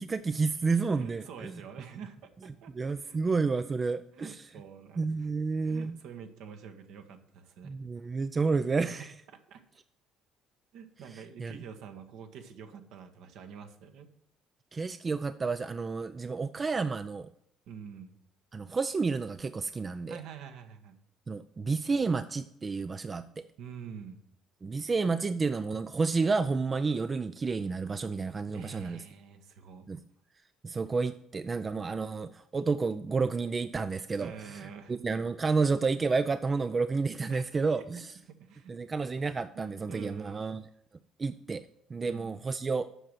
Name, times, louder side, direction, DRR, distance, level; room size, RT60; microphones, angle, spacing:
voice 1, 0.0-1.5 2.7-4.4 5.0-5.9 7.6-9.1 11.4-11.5 14.7-17.3 18.5-20.2 21.3-23.4 24.6-29.0 29.9-30.0 30.6-38.1 38.7-40.6 41.2-41.6 41.9-42.9, right 4 dB, 35° right, 11 dB, 0.4 m, -30 dB
voice 2, 0.9-3.2 4.1-7.8 8.9-9.1 9.3-9.6 10.7-14.1 17.7-18.1 20.1-21.0 23.6-24.2 28.5-29.9 34.2-35.0 37.3-37.8 38.3-38.7 39.5-40.4 42.1-42.4, right 7 dB, 65° right, 6 dB, 1.1 m, -47 dB
8.0 x 6.1 x 7.7 m, 0.75 s
hypercardioid pair, 55°, 0 cm